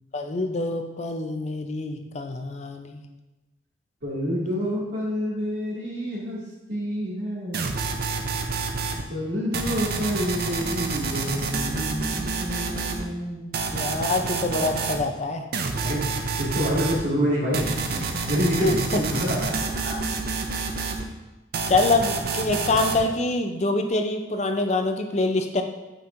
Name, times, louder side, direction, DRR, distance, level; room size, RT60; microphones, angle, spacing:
voice 1, 0.1-3.0 13.7-15.4 18.6-19.0 21.7-25.6, left 2 dB, 35° left, 5 dB, 0.5 m, -25 dB
voice 2, 4.0-6.4 6.7-7.7 9.1-13.5 15.8-16.1 16.4-20.0, equal, 80° right, -6 dB, 2.1 m, -28 dB
sound 1, 7.5-9.0 9.5-13.0 13.5-15.0 15.5-17.0 17.5-21.0 21.5-23.0, right 4 dB, 55° right, 0.5 m, -28 dB
8.9 x 4.4 x 2.5 m, 1.1 s
head